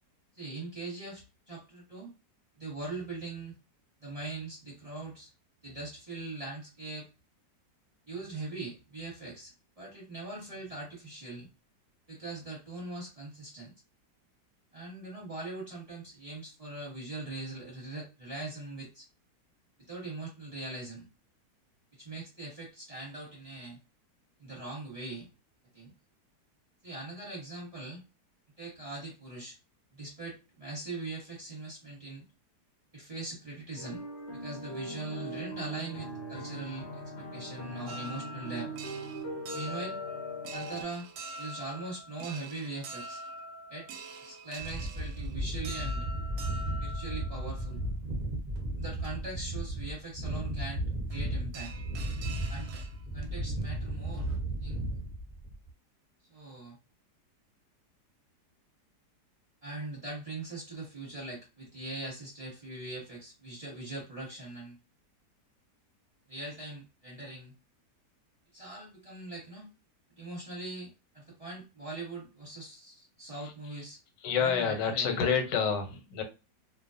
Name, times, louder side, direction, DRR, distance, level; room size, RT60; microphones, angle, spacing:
voice 1, 0.3-2.1 2.6-3.5 4.0-5.3 5.6-7.1 8.1-11.5 12.1-13.7 14.7-19.1 19.8-21.0 21.9-23.8 24.4-25.3 25.7-25.9 26.8-28.0 28.6-29.6 29.9-32.2 32.9-34.0 34.3-38.7 39.5-40.0 40.5-41.1 41.4-43.2 43.7-43.9 44.2-46.1 46.8-47.8 48.8-50.8 51.1-51.7 52.5-52.8 53.1-54.3 54.6-54.8 56.3-56.8 59.6-64.7 66.3-67.5 68.5-69.7 70.1-74.0 74.4-75.4, right 2 dB, 25° right, 0.9 m, -41 dB
sound 1, 33.8-40.8, equal, 65° left, 0.7 m, -40 dB
sound 2, 37.9-47.9 48.6-48.7 49.0-49.1 51.1-51.2 51.5-53.2 53.6-53.7 54.1-54.4, right 2 dB, 70° right, 1.0 m, -45 dB
sound 3, 44.6-55.7, right 1 dB, 45° right, 0.5 m, -35 dB
voice 2, 74.2-76.2, left 6 dB, 90° left, 1.3 m, -28 dB
2.7 x 2.2 x 2.4 m
omnidirectional pair, 1.8 m